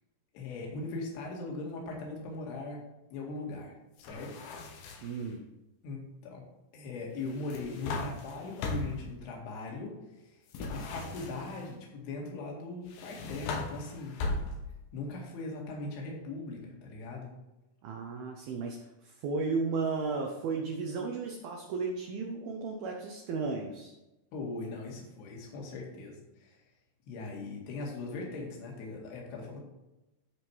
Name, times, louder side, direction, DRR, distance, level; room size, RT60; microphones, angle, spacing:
voice 1, 0.3-2.8 3.1-4.5 5.8-6.4 6.7-14.2 14.9-17.3 24.3-26.7 27.1-29.6, left 3 dB, 65° left, -2 dB, 4.0 m, -40 dB
sound 1, 4.0-5.3 7.2-9.1 10.5-11.7 12.9-14.8, left 3 dB, 90° left, 3.9 m, -38 dB
voice 2, 5.0-5.5 17.8-23.9, right 4 dB, 75° right, 1 dB, 2.4 m, -34 dB
14.5 x 5.1 x 4.6 m, 0.98 s
omnidirectional pair, 5.3 m